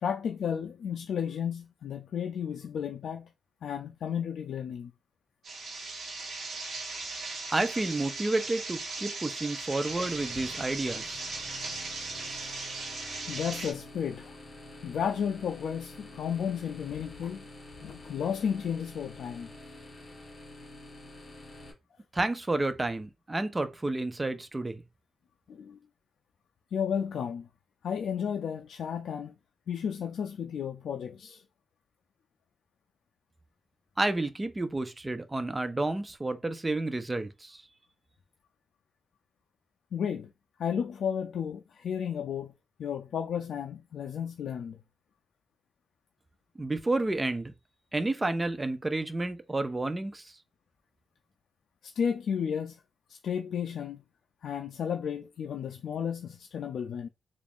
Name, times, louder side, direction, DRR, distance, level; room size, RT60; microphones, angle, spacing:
voice 1, 0.0-3.3 3.6-4.9 12.3-12.5 13.3-14.4 14.8-17.4 17.8-19.5 25.5-25.8 26.7-27.5 27.8-29.3 29.7-31.4 39.9-40.3 40.6-42.5 42.8-44.8 51.8-52.8 53.1-54.0 54.4-57.1, left 8 dB, 65° left, 0.4 m, -33 dB
sound 1, 5.4-13.7, right 3 dB, 45° right, 1.1 m, -38 dB
voice 2, 7.5-11.3 22.1-24.8 34.0-37.6 46.6-47.5 47.9-50.3, right 2 dB, 15° right, 0.4 m, -30 dB
sound 2, 9.8-21.7, left 1 dB, 30° left, 1.5 m, -48 dB
3.4 x 2.4 x 3.5 m
wide cardioid pair, 150°, 0 cm